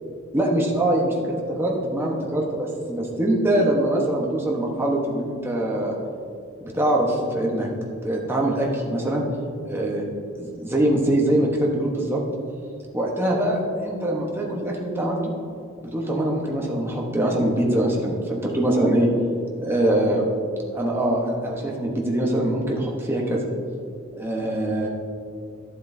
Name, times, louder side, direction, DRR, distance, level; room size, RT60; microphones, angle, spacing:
voice 1, 0.3-5.9 6.6-7.7 8.0-9.2 9.6-10.0 10.4-12.2 12.9-15.3 15.8-19.1 19.6-20.2 20.7-23.5 24.1-24.9, right 1 dB, 10° right, -2 dB, 1.0 m, -23 dB
12.0 x 7.6 x 2.7 m, 2.4 s
head